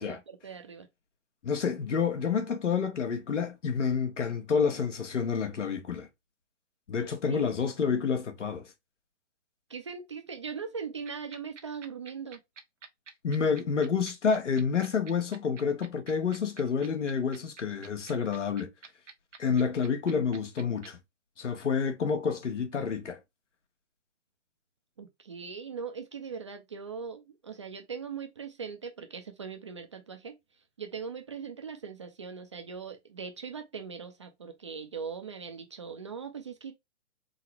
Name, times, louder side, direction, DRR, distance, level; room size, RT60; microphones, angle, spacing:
voice 1, 0.0-0.9 7.3-7.5 9.7-12.4 25.0-30.4 30.8-36.7, right 6 dB, 25° right, 0.4 m, -40 dB
voice 2, 1.4-6.1 6.9-8.6 13.2-18.7 19.4-21.0 21.4-23.2, left 6 dB, 85° left, 1.2 m, -29 dB
sound 1, 11.1-20.9, right 6 dB, 80° right, 1.1 m, -48 dB
3.9 x 2.1 x 4.3 m
hypercardioid pair, 150°, 35 cm